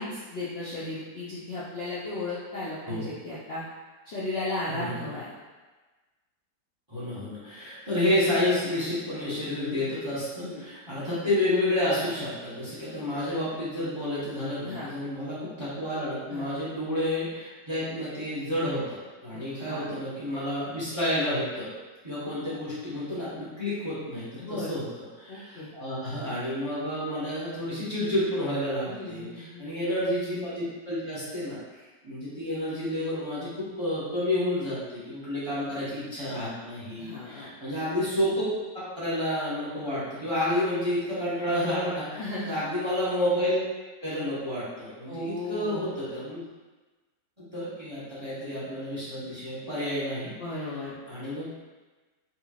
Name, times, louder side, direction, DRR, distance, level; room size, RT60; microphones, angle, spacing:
voice 1, 0.0-3.6 4.1-5.3 10.4-10.7 14.6-14.9 16.3-16.5 19.6-19.9 24.4-24.7 25.3-25.7 28.9-29.7 37.0-37.5 42.2-42.6 45.1-45.9 50.4-51.0, left 2 dB, 80° left, -9 dB, 0.5 m, -35 dB
voice 2, 6.9-21.7 22.0-38.5 38.7-43.6 44.0-46.4 47.4-50.3 51.1-51.5, left 1 dB, 20° right, -11 dB, 0.9 m, -30 dB
4.0 x 2.9 x 2.4 m, 1.2 s
omnidirectional pair, 1.9 m